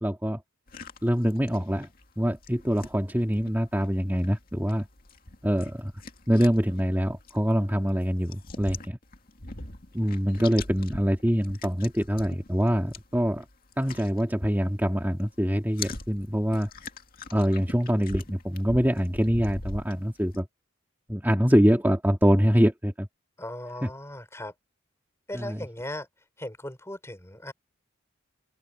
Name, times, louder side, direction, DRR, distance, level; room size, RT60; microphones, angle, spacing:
voice 1, 0.0-0.4 1.0-1.9 2.2-4.9 5.4-5.9 6.3-9.0 9.9-13.5 13.8-16.7 17.3-20.5 21.1-23.1 25.3-25.6, equal, 10° right, 2.5 m, -24 dB
sound 1, 0.7-14.9 15.2-20.4, left 3 dB, 40° left, 2.4 m, -43 dB
voice 2, 23.4-24.5 25.3-26.1 26.4-27.5, left 1 dB, 10° left, 4.7 m, -38 dB
open air
head